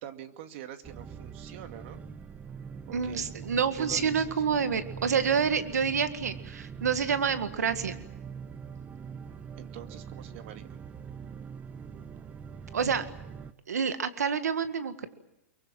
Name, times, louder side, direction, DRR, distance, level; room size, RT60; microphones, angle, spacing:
voice 1, 0.0-2.0 2.9-4.3 9.6-10.8, right 11 dB, 50° right, 8 dB, 2.2 m, -44 dB
sound 1, 0.8-13.5, right 6 dB, 15° right, 0.9 m, -43 dB
voice 2, 2.9-8.0 12.7-13.1 13.7-15.1, right 6 dB, 85° right, 10 dB, 1.8 m, -28 dB
24.5 x 23.0 x 7.7 m, 0.93 s
hypercardioid pair, 135°, 9 cm